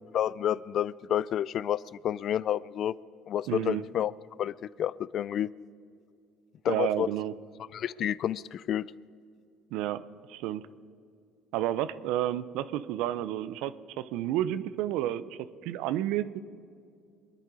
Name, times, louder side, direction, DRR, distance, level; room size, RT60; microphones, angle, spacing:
voice 1, 0.0-2.9 3.3-4.1 4.4-5.5 6.6-7.1 7.7-8.9, left 10 dB, 55° left, 21 dB, 0.3 m, -30 dB
voice 2, 3.5-3.8 6.7-7.3 9.7-10.0 10.3-10.6 11.5-16.4, right 12 dB, 75° right, 15 dB, 0.6 m, -31 dB
23.0 x 10.0 x 4.9 m, 2.3 s
supercardioid pair, 95°, 0 cm